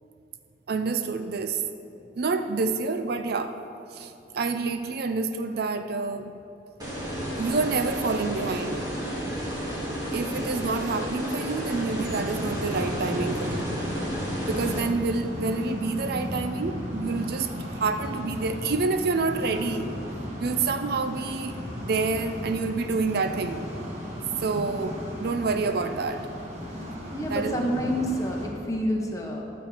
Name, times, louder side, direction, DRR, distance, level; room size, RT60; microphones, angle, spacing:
voice 1, 0.7-1.6 2.2-3.6 3.9-6.3 7.4-8.8 10.1-13.7 14.4-19.9 20.4-23.6 24.4-26.3 27.3-27.5, right 4 dB, 60° right, 8 dB, 0.5 m, -28 dB
sound 1, 6.8-14.8, equal, 25° right, 2.1 m, -32 dB
sound 2, 11.8-28.5, equal, 40° right, 2.0 m, -35 dB
voice 2, 27.1-29.4, equal, 20° left, 0 dB, 1.2 m, -28 dB
12.0 x 4.3 x 7.3 m, 2.8 s
head